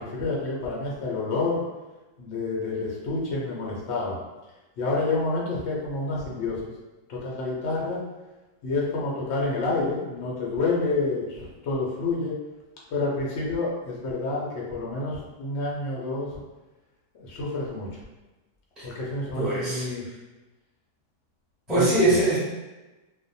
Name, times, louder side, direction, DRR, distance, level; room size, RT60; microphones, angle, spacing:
voice 1, 0.0-1.6 2.2-4.2 4.8-6.6 7.1-8.0 8.6-12.3 12.9-16.3 17.1-17.9 18.8-20.0 21.7-22.1, left 3 dB, 60° left, -4 dB, 0.8 m, -28 dB
voice 2, 19.3-19.9 21.7-22.4, right 2 dB, ahead, -10 dB, 0.6 m, -22 dB
2.5 x 2.1 x 2.6 m, 1.1 s
omnidirectional pair, 1.6 m